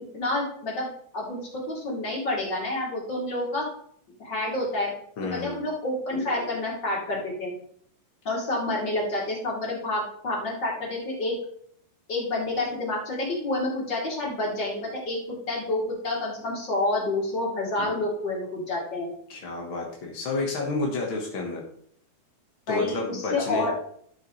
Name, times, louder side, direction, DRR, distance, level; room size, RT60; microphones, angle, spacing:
voice 1, 0.1-0.9 1.1-3.7 4.2-4.9 5.3-7.5 8.2-11.3 12.1-19.1 22.7-23.7, left 2 dB, 30° left, -5 dB, 3.3 m, -28 dB
voice 2, 5.2-5.6 17.8-18.0 19.3-21.6 22.7-23.7, left 3 dB, 65° left, -1 dB, 1.2 m, -30 dB
12.0 x 7.6 x 3.2 m, 0.66 s
omnidirectional pair, 4.4 m